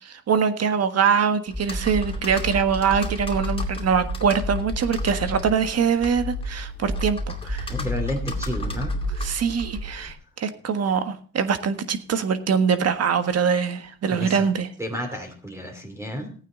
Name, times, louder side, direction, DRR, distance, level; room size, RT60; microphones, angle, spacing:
voice 1, 0.0-7.7 9.2-14.7, right 6 dB, 55° right, 10 dB, 1.6 m, -23 dB
Computer keyboard, 1.5-10.1, left 1 dB, 20° left, 2.6 m, -30 dB
voice 2, 7.7-8.9 14.1-14.5 14.8-16.3, equal, 10° right, 3 dB, 2.8 m, -31 dB
15.5 x 9.2 x 3.9 m, 0.41 s
cardioid pair, 90°, 30 cm